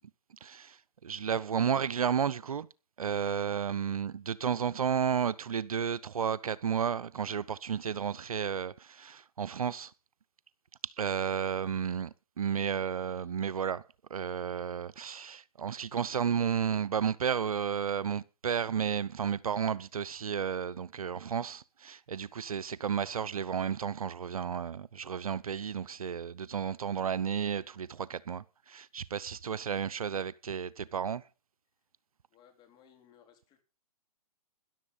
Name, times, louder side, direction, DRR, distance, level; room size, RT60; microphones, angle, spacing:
voice 1, 0.4-0.8 1.0-2.7 3.0-9.9 10.8-13.8 14.1-31.2, right 7 dB, 70° right, 0.7 m, -32 dB
voice 2, 32.3-33.6, left 9 dB, 20° left, 3.8 m, -61 dB
14.0 x 11.0 x 5.5 m
figure-of-eight pair, 130°, 19 cm